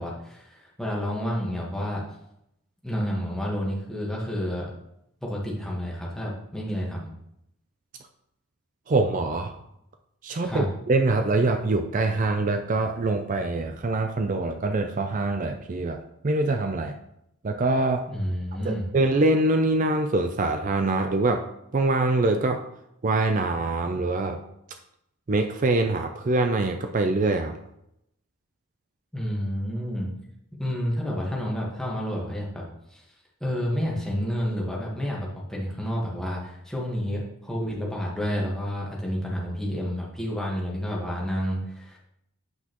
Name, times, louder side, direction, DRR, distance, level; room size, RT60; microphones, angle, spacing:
voice 1, 0.0-2.0 2.8-4.7 5.2-7.1 10.4-10.7 18.1-18.9 29.1-30.1 30.6-32.6 32.9-33.0 33.4-42.0, equal, ahead, -4 dB, 1.3 m, -30 dB
voice 2, 8.9-9.6 10.2-16.0 16.2-16.9 17.4-18.1 18.6-21.4 21.7-22.6 23.0-24.4 25.3-27.5, right 2 dB, 35° right, 6 dB, 0.4 m, -24 dB
8.1 x 5.9 x 3.0 m, 0.79 s
head